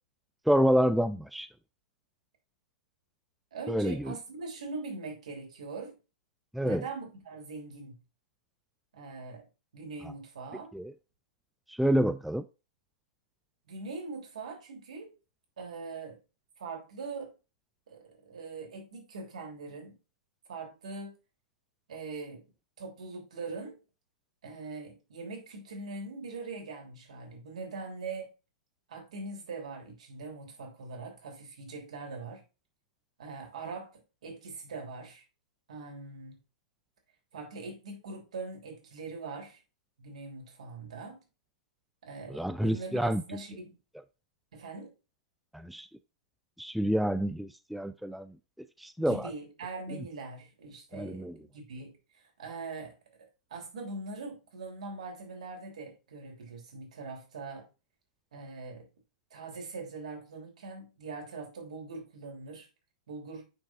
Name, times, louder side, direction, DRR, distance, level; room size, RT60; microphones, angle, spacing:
voice 1, 0.5-1.5 3.7-4.1 6.5-6.8 10.7-10.9 11.7-12.4 42.3-43.2 45.5-45.9 46.6-48.3 48.8-49.3 50.9-51.4, equal, ahead, 0.4 m, -28 dB
voice 2, 3.5-6.0 6.6-8.0 8.9-9.4 9.7-10.7 13.7-15.1 15.6-16.2 16.6-17.3 17.9-20.0 20.5-21.1 21.9-22.4 22.8-23.8 24.4-28.3 28.9-32.4 33.2-35.2 35.7-36.4 37.3-39.6 40.0-41.2 42.0-43.8 44.5-44.9 49.0-57.7 58.3-58.9 59.3-62.7 63.1-63.4, right 3 dB, 70° right, 3.3 m, -42 dB
9.0 x 5.3 x 2.5 m
figure-of-eight pair, 105°, 4 cm